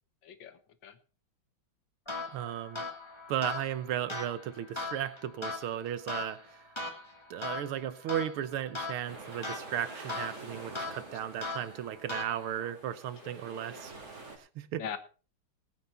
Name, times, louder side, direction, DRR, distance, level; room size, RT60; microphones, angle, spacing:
voice 1, 0.2-1.0 13.2-13.4 14.8-15.0, left 8 dB, 65° left, 1.9 m, -41 dB
sound 1, 2.1-12.7, left 3 dB, 15° left, 2.1 m, -40 dB
voice 2, 2.3-2.8 3.3-6.6 7.3-13.9 14.4-14.8, right 10 dB, 85° right, 1.9 m, -35 dB
sound 2, 9.1-14.4, right 3 dB, 40° right, 3.4 m, -47 dB
19.0 x 9.3 x 4.3 m
omnidirectional pair, 2.3 m